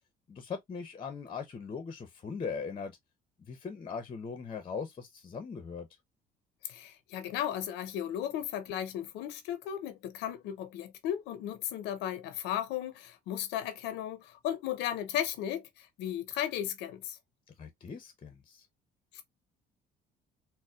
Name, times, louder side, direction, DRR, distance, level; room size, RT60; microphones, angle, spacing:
voice 1, 0.3-2.9 3.5-5.9 17.6-18.7, left 5 dB, 30° left, 0.6 m, -40 dB
voice 2, 6.6-17.2 19.1-19.2, left 11 dB, 90° left, 0.6 m, -35 dB
4.0 x 2.1 x 2.2 m
cardioid pair, 110°, 17 cm